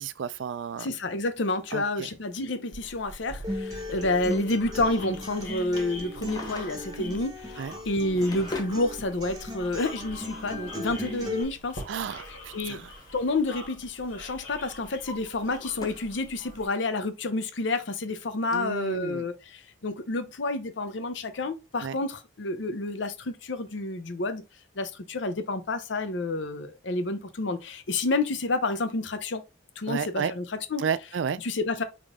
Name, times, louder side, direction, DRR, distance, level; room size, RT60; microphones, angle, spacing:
voice 1, 0.0-0.9 1.7-2.1 7.6-7.7 11.9-12.8 18.5-19.2 21.8-21.9 29.9-30.3 30.8-31.4, right 7 dB, 75° right, 0.4 m, -32 dB
voice 2, 0.8-11.8 12.3-12.8 13.1-24.4 24.8-29.4 29.8-30.9 31.4-31.8, left 2 dB, 70° left, 0.7 m, -29 dB
sound 1, 2.7-16.7, left 1 dB, 90° left, 2.2 m, -44 dB
Acoustic guitar, 3.4-11.4, left 1 dB, 20° right, 0.9 m, -37 dB
Drawer open or close, 6.0-7.1 7.8-8.8 9.9-10.0 11.8-13.3 13.6-14.0 14.5-16.2 16.6-16.7 17.4-17.5 17.7-17.8 18.5-18.6, left 2 dB, 20° left, 0.7 m, -42 dB
3.8 x 3.7 x 3.5 m
head